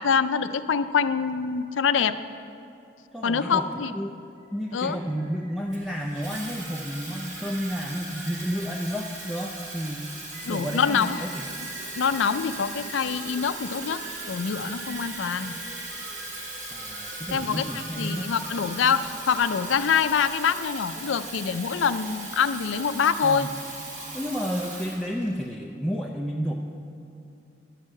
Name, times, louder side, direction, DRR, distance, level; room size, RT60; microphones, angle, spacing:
voice 1, 0.0-2.2 3.2-3.9 4.7-5.0 10.5-11.2 12.0-14.0 14.3-15.5 17.3-23.5, left 6 dB, 85° left, 11 dB, 0.4 m, -25 dB
voice 2, 3.1-4.2 4.5-10.1 10.5-11.4 16.7-18.3 23.2-23.7 24.1-26.5, equal, ahead, -2 dB, 0.4 m, -31 dB
sound 1, 4.4-20.1, right 1 dB, 55° right, 1.9 m, -45 dB
Water tap faucet / Fill (with liquid), 5.7-25.5, right 2 dB, 40° right, 1.6 m, -39 dB
11.5 x 6.4 x 7.5 m, 2.6 s
head